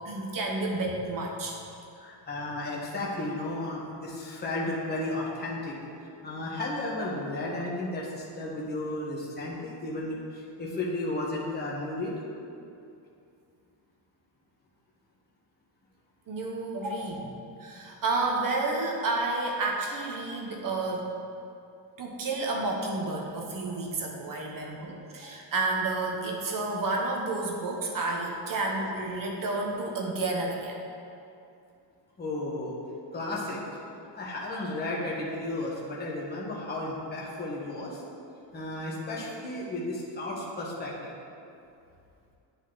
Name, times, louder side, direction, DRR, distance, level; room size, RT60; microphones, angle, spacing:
voice 1, 0.0-1.6 16.3-17.3 17.6-21.1 22.0-30.8, right 2 dB, 45° right, 0 dB, 0.9 m, -30 dB
voice 2, 1.9-5.7 6.0-12.1 32.2-32.7 33.1-33.8 34.1-38.0 38.5-41.1, left 2 dB, 20° left, -5 dB, 1.2 m, -33 dB
9.7 x 4.1 x 3.9 m, 2.6 s
cardioid pair, 155°, 45 cm